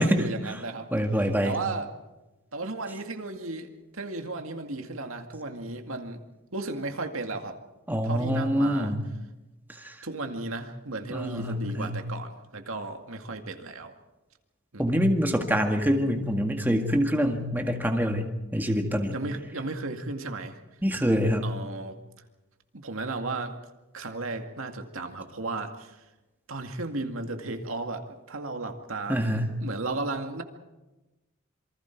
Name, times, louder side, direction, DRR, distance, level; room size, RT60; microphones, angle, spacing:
voice 1, 0.0-0.9 1.4-1.9 2.5-6.2 6.5-7.6 8.0-8.9 10.0-13.9 14.7-14.8 19.1-20.5 21.4-22.0 22.7-23.5 23.9-25.9 26.5-30.4, right 3 dB, 75° right, 5 dB, 2.1 m, -34 dB
voice 2, 0.9-1.6 7.9-9.1 9.7-10.0 11.1-12.0 14.8-19.2 20.8-21.5 29.1-29.5, equal, 10° right, 3 dB, 1.9 m, -25 dB
27.0 x 24.5 x 4.6 m, 1.1 s
head